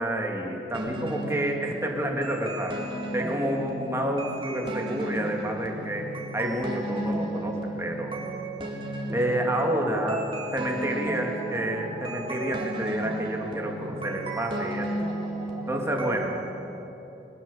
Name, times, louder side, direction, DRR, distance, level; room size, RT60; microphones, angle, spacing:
voice 1, 0.0-2.8 3.1-6.1 6.3-8.2 9.1-10.2 10.5-14.9 15.7-16.4, right 1 dB, 15° right, 0 dB, 2.7 m, -29 dB
sound 1, 0.7-16.5, right 1 dB, 30° right, 3.3 m, -34 dB
22.0 x 19.5 x 7.3 m, 3.0 s
head